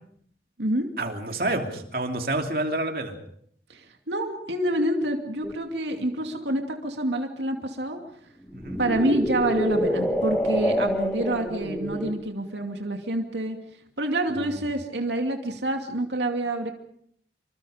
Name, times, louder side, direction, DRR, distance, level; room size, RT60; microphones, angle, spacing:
voice 1, 1.0-3.2 8.5-8.8 14.3-14.6, right 2 dB, 55° right, 4 dB, 3.0 m, -29 dB
voice 2, 4.1-8.0 8.8-13.6 14.0-16.7, right 1 dB, 85° right, 4 dB, 2.5 m, -27 dB
sound 1, 5.4-5.5 8.4-12.2, equal, 10° left, 1.8 m, -27 dB
27.0 x 24.5 x 5.1 m, 0.67 s
head